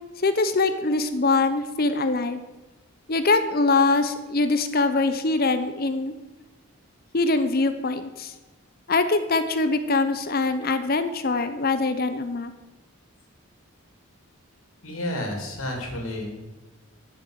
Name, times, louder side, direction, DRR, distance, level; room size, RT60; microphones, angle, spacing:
voice 1, 0.2-2.4 3.1-6.1 7.1-8.3 8.9-12.5, left 3 dB, 45° left, 10 dB, 0.8 m, -23 dB
voice 2, 14.8-16.4, left 1 dB, 75° left, 1 dB, 3.3 m, -31 dB
13.0 x 7.2 x 7.5 m, 1.1 s
head